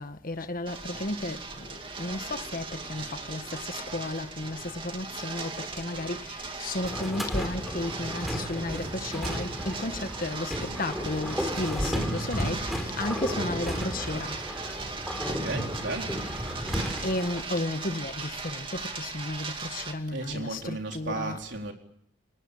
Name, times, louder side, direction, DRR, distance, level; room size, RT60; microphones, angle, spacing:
voice 1, 0.0-14.4 17.0-21.4, left 2 dB, 45° left, 1.4 m, -34 dB
sound 1, 0.7-19.9, right 4 dB, 25° right, 2.5 m, -38 dB
sound 2, 6.8-17.4, equal, ahead, 4.1 m, -33 dB
voice 2, 15.2-16.2 20.1-21.7, right 2 dB, 70° right, 4.2 m, -35 dB
29.0 x 18.5 x 8.7 m
head